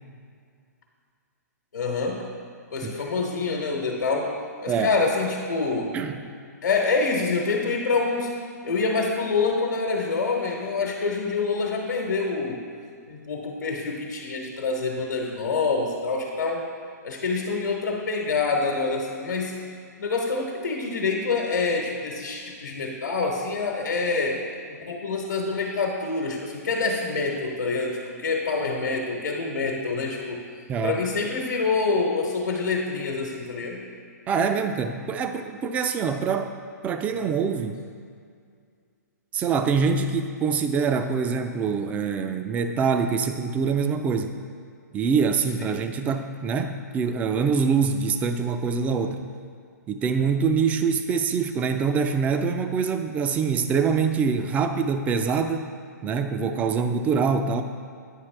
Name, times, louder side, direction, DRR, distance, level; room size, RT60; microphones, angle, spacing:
voice 1, 1.7-2.2 2.7-4.3 4.6-5.9 6.6-8.3 8.6-12.6 13.1-16.6 17.0-19.5 20.0-30.4 30.8-33.8 37.1-37.2 45.6-45.8, left 4 dB, 80° left, -1 dB, 1.1 m, -26 dB
voice 2, 30.7-31.0 34.3-36.5 36.8-37.8 39.3-44.4 44.9-49.2 49.9-55.7 56.0-57.6, right 5 dB, 15° right, 7 dB, 0.4 m, -24 dB
9.0 x 5.7 x 3.3 m, 2.2 s
hypercardioid pair, 135°, 10 cm